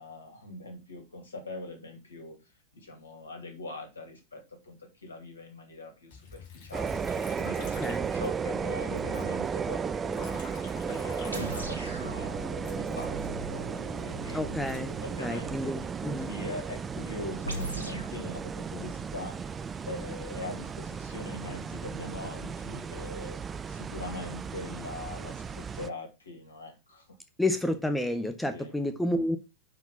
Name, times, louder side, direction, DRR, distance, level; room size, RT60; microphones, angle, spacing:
voice 1, 0.0-2.4 2.7-6.9 7.4-10.4 10.9-14.4 15.0-19.5 19.9-23.4 23.7-27.1 28.5-28.8, left 2 dB, 75° left, 2.2 m, -42 dB
Liquid, 6.1-8.7 9.0-12.2 12.6-15.6 16.2-16.7, left 4 dB, 45° left, 2.7 m, -49 dB
sound 1, 6.7-25.9, right 6 dB, 20° right, 0.4 m, -35 dB
sound 2, 11.3-15.6 17.4-18.2, right 2 dB, 80° right, 1.5 m, -39 dB
voice 2, 14.3-14.9 15.2-16.3 27.4-29.4, left 1 dB, 5° left, 0.7 m, -30 dB
5.8 x 4.7 x 5.5 m
figure-of-eight pair, 90°, 0 cm